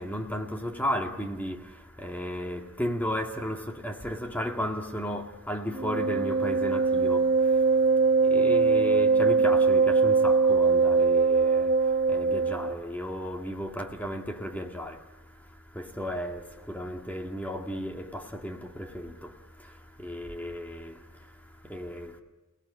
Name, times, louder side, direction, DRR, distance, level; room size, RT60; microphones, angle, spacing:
voice 1, 0.0-22.2, equal, 10° left, 1.9 m, -35 dB
Wind instrument woodwind instrument, 5.7-12.8, right 4 dB, 45° right, 1.3 m, -22 dB
29.5 x 19.0 x 8.6 m
head